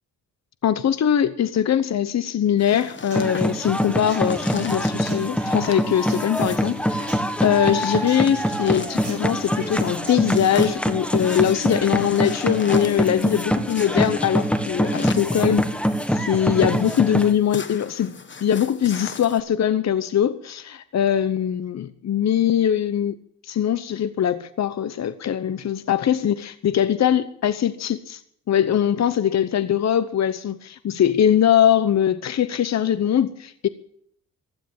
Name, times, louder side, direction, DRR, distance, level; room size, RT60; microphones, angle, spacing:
voice 1, 0.6-6.8 7.4-15.7 16.1-23.2 23.4-28.2 28.5-33.7, left 9 dB, 55° left, 0.9 m, -21 dB
sound 1, 2.6-19.4, left 5 dB, 35° left, 1.4 m, -39 dB
Human voice / Acoustic guitar, 2.7-10.7, right 2 dB, 50° right, 6.4 m, -44 dB
sound 2, 3.1-17.3, equal, 5° left, 1.6 m, -24 dB
16.0 x 12.0 x 7.2 m
cardioid pair, 90°, 32 cm